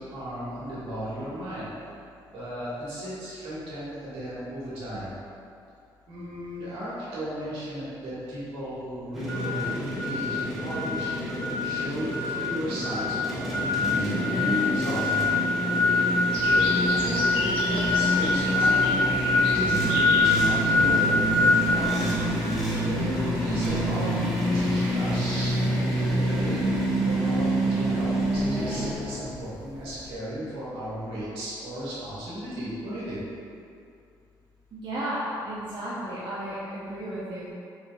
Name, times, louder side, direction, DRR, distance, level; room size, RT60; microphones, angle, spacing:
voice 1, 0.0-1.7 2.3-5.1 6.1-11.1 11.6-14.4 14.6-15.3 16.4-22.2 22.8-24.3 24.5-26.7 27.0-33.2, equal, 80° right, -9 dB, 1.4 m, -35 dB
sound 1, 9.1-28.9, left 1 dB, ahead, 1.1 m, -24 dB
sound 2, 16.3-30.1, left 3 dB, 80° left, 0.5 m, -39 dB
voice 2, 34.7-37.5, right 1 dB, 60° right, -8 dB, 0.6 m, -33 dB
4.5 x 3.3 x 2.2 m, 2.5 s
cardioid pair, 75°, 9 cm